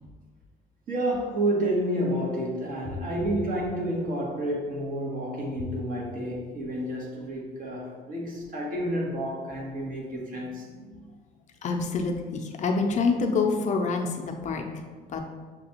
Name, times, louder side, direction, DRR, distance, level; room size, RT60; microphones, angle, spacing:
voice 1, 0.9-10.7, right 1 dB, 55° right, -2 dB, 1.1 m, -30 dB
voice 2, 10.6-11.1 11.6-15.3, left 4 dB, 45° left, 3 dB, 0.5 m, -28 dB
6.5 x 2.3 x 2.9 m, 1.4 s
cardioid pair, 110°, 17 cm